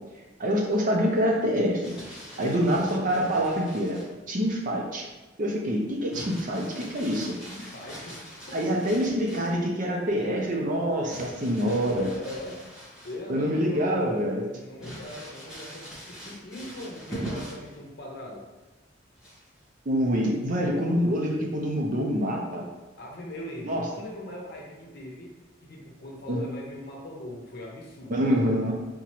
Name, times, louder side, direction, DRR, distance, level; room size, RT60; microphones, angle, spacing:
voice 1, 0.4-1.8 2.4-4.0 4.3-5.0 5.4-7.4 8.5-12.1 13.3-14.4 19.9-22.7 23.6-23.9 26.3-26.4 28.1-28.7, equal, 45° right, 0 dB, 0.6 m, -26 dB
Crumpling crinkling, 1.8-4.2 6.1-9.6 11.1-13.4 13.9-14.0 14.8-17.7 19.2-19.6, right 1 dB, 5° right, 1.1 m, -42 dB
voice 2, 2.3-2.8 7.5-8.8 12.0-12.6 13.0-14.1 14.5-18.4 23.0-25.3 25.6-28.2, left 1 dB, 55° left, -1 dB, 0.8 m, -40 dB
3.6 x 3.0 x 3.0 m, 1.2 s
head